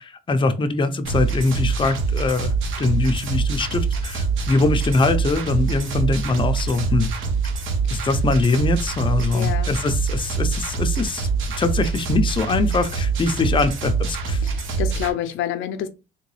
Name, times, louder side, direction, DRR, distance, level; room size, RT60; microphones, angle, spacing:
voice 1, 0.0-7.1 7.9-11.3 11.6-14.5, left 3 dB, 25° left, 0.5 m, -22 dB
sound 1, 1.0-15.1, right 4 dB, 85° right, 0.9 m, -24 dB
voice 2, 9.3-9.8 14.4-15.9, left 10 dB, 85° left, 0.5 m, -28 dB
3.7 x 2.2 x 3.1 m
cardioid pair, 90°, 20 cm